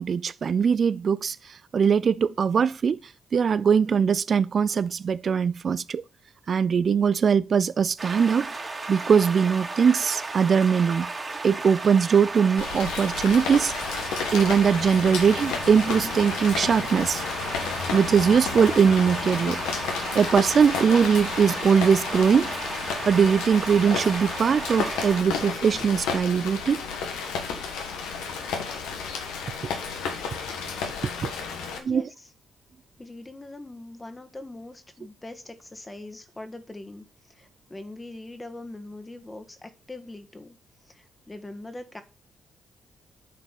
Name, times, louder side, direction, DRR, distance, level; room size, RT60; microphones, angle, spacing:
voice 1, 0.0-6.0 6.5-8.5 8.9-11.1 11.4-13.7 14.3-17.2 17.9-19.6 20.1-22.5 23.1-26.8 31.2-31.3 31.8-32.1, right 6 dB, 55° right, 0.3 m, -21 dB
sound 1, 8.0-25.2, right 3 dB, 35° right, 2.3 m, -34 dB
Rain, 12.6-31.8, left 5 dB, 80° left, 1.4 m, -32 dB
voice 2, 31.6-32.3 33.0-40.6 40.9-42.0, left 2 dB, 25° left, 1.6 m, -42 dB
9.1 x 4.2 x 6.0 m
hypercardioid pair, 45°, 0 cm